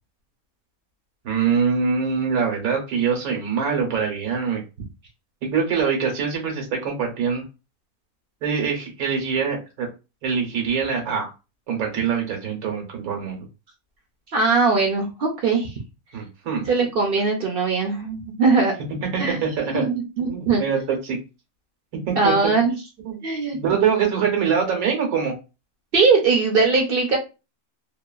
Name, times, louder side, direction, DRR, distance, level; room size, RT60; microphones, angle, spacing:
voice 1, 1.2-4.6 5.4-7.4 8.4-9.9 10.2-11.3 11.7-13.5 16.1-16.7 19.1-19.9 20.2-21.2 22.1-22.3 23.1-23.2 23.5-25.3, right 6 dB, 80° right, 1 dB, 1.2 m, -24 dB
voice 2, 14.3-15.8 16.6-18.7 19.2-19.4 19.7-20.6 22.1-22.7 23.2-23.6 25.9-27.2, right 4 dB, 60° right, 2 dB, 0.6 m, -20 dB
2.8 x 2.2 x 2.3 m, 0.28 s
omnidirectional pair, 1.5 m